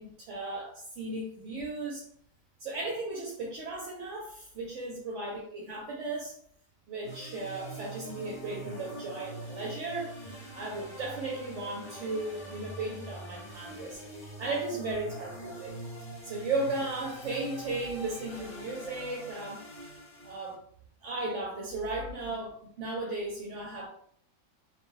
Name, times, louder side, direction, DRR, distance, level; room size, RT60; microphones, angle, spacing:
voice 1, 0.0-2.1 2.6-6.3 6.9-20.0 20.2-20.6 21.0-23.9, right 2 dB, 65° right, -2 dB, 0.9 m, -36 dB
sound 1, 7.0-20.5, right 1 dB, 60° left, 1.2 m, -44 dB
2.5 x 2.2 x 3.1 m, 0.64 s
omnidirectional pair, 1.4 m